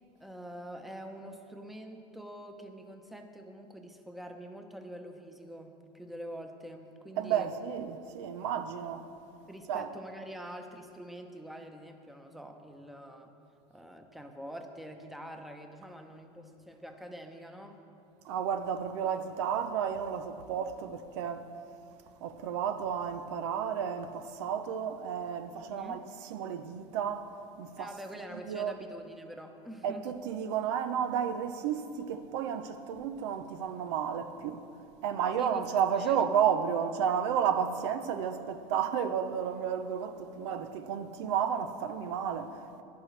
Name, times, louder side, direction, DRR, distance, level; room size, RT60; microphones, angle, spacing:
voice 1, 0.2-7.5 9.5-13.3 13.7-18.0 25.7-26.0 27.8-30.1 35.4-36.2, equal, ahead, 0.9 m, -45 dB
voice 2, 7.2-9.1 9.7-9.9 18.2-21.5 22.2-27.3 27.6-27.9 28.5-28.7 29.8-34.7 35.0-42.8, right 8 dB, 85° right, 0.7 m, -32 dB
16.0 x 11.0 x 3.3 m
supercardioid pair, 120°, 14 cm